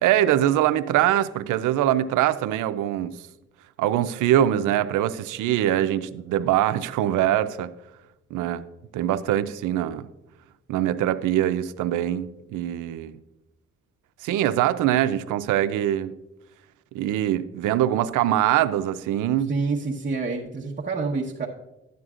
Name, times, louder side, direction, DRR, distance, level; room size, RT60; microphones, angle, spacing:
voice 1, 0.0-3.2 3.8-7.7 8.3-8.6 8.9-10.1 10.7-13.1 14.2-16.1 16.9-19.5, right 12 dB, 85° right, 12 dB, 0.6 m, -23 dB
voice 2, 19.5-21.5, right 4 dB, 25° right, -4 dB, 1.2 m, -27 dB
13.0 x 9.4 x 2.5 m, 0.95 s
cardioid pair, 90°, 30 cm